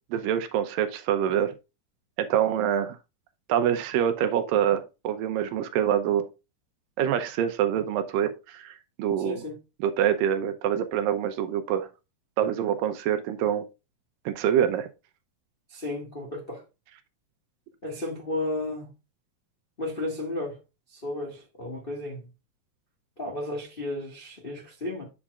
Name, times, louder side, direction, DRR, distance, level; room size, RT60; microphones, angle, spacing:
voice 1, 0.1-1.5 2.2-3.0 3.5-6.3 7.0-9.4 9.8-11.9 12.4-13.6 14.3-14.9, right 9 dB, 80° right, 2.2 m, -25 dB
voice 2, 9.2-9.6 15.7-16.6 17.8-18.9 19.8-20.6 20.9-22.3 23.2-25.0, left 2 dB, 65° left, 0.5 m, -33 dB
8.6 x 7.1 x 2.4 m
omnidirectional pair, 4.3 m